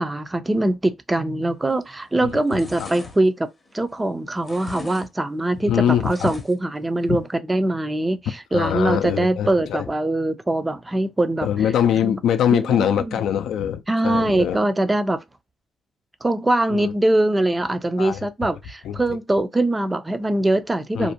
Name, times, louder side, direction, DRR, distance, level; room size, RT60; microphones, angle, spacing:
voice 1, 0.0-3.5 3.7-11.5 12.0-12.2 12.5-13.2 13.9-15.2 16.2-21.1, right 1 dB, 15° right, 0.4 m, -22 dB
sound 1, 1.6-2.0 2.3-4.1 4.4-5.1 5.3-6.8 7.1-7.2, left 2 dB, 25° left, 0.6 m, -42 dB
voice 2, 5.7-6.3 7.1-7.2 8.5-9.9 11.4-14.6 16.7-16.9 18.0-18.6 18.8-19.0 20.9-21.1, left 9 dB, 80° left, 0.3 m, -23 dB
2.5 x 2.1 x 2.7 m
cardioid pair, 90°, 0 cm